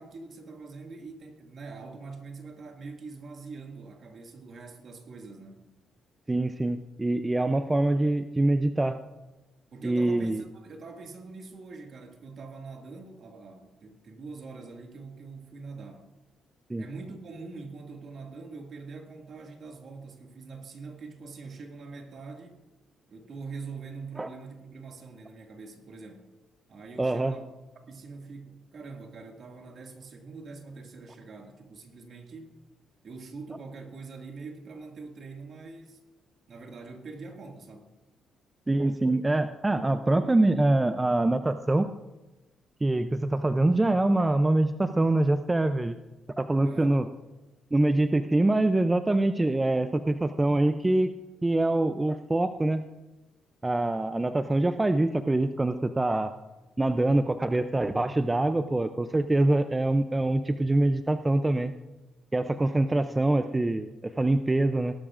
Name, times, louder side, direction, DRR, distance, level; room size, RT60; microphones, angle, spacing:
voice 1, 0.0-5.7 9.7-16.1 16.8-22.6 23.1-26.2 26.7-27.4 27.8-32.5 33.0-36.0 36.5-37.9 46.6-46.9 62.5-63.1, right 4 dB, 55° right, 2 dB, 2.1 m, -44 dB
voice 2, 6.3-9.0 9.8-10.4 16.7-16.8 24.2-24.3 27.0-27.3 38.7-41.9 42.8-46.0 46.4-47.1 47.7-51.1 51.4-52.8 53.6-56.3 56.8-61.7 62.3-64.9, right 2 dB, 15° right, 9 dB, 0.5 m, -24 dB
18.5 x 12.0 x 2.5 m, 1.1 s
cardioid pair, 90°, 0 cm